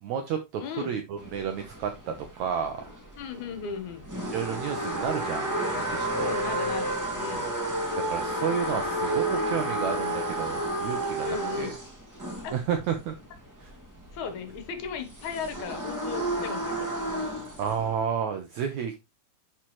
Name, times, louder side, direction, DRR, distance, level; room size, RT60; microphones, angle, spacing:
voice 1, 0.0-2.9 4.3-6.4 8.1-11.7 12.5-13.1 13.6-13.7 17.6-19.0, right 7 dB, 75° right, 6 dB, 1.7 m, -31 dB
voice 2, 0.6-1.0 3.2-4.0 6.2-7.4 11.2-11.8 12.4-12.5 14.1-17.1, left 5 dB, 65° left, 8 dB, 2.2 m, -36 dB
sound 1, 1.2-18.0, right 1 dB, 10° right, 0.9 m, -32 dB
10.0 x 5.0 x 3.1 m, 0.23 s
omnidirectional pair, 4.3 m